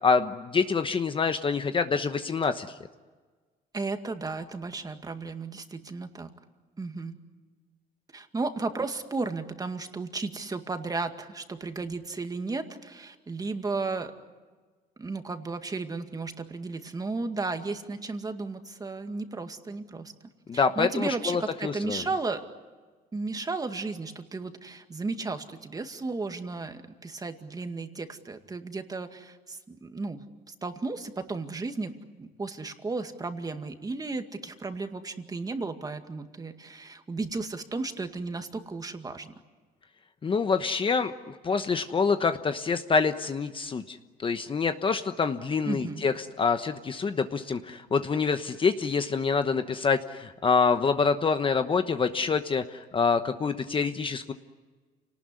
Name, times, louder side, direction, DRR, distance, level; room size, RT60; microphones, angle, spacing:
voice 1, 0.0-2.8 20.5-22.0 40.2-54.3, left 5 dB, 30° left, 9 dB, 1.1 m, -26 dB
voice 2, 3.7-6.3 6.8-7.2 8.1-14.1 15.0-20.1 20.5-22.4 23.1-39.3 45.6-46.0, right 3 dB, 20° right, 6 dB, 2.1 m, -34 dB
28.0 x 19.0 x 9.8 m, 1.4 s
cardioid pair, 110°, 17 cm